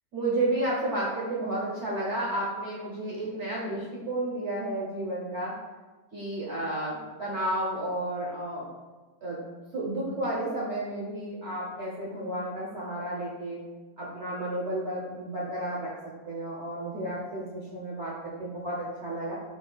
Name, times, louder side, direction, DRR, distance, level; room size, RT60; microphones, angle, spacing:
voice 1, 0.1-5.6 6.1-8.7 9.2-9.4 9.7-13.6 14.0-15.9 16.3-19.3, right 1 dB, 50° right, -5 dB, 0.9 m, -32 dB
4.6 x 4.1 x 2.2 m, 1.2 s
omnidirectional pair, 1.8 m